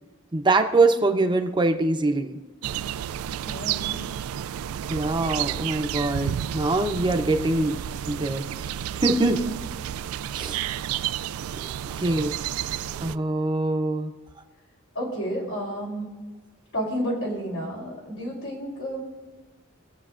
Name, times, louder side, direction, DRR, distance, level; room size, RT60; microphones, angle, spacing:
voice 1, 0.3-2.4 4.9-7.8 8.1-9.4 10.3-10.6 12.0-12.3 13.0-14.1, right 2 dB, 20° right, 5 dB, 0.7 m, -24 dB
sound 1, 2.6-13.2, right 10 dB, 90° right, 0.3 m, -31 dB
voice 2, 3.5-4.0 9.0-9.3 12.8-13.1 15.0-16.1 16.7-19.1, equal, 80° left, -3 dB, 3.6 m, -31 dB
22.5 x 7.7 x 2.5 m, 1.2 s
head